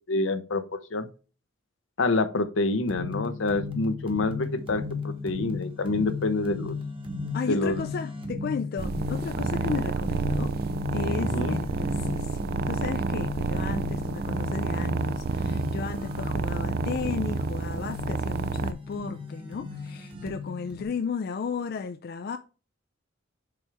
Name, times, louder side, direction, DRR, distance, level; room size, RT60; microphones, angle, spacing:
voice 1, 0.1-1.1 2.0-6.7 7.5-7.8 11.2-11.6, left 3 dB, 75° left, 0.8 m, -27 dB
sound 1, 2.8-20.8, left 4 dB, 25° right, 1.2 m, -36 dB
voice 2, 7.3-10.5 10.9-22.4, left 5 dB, 50° left, 0.3 m, -34 dB
sound 2, 8.8-18.7, right 4 dB, 50° right, 0.4 m, -30 dB
7.0 x 4.7 x 3.4 m
head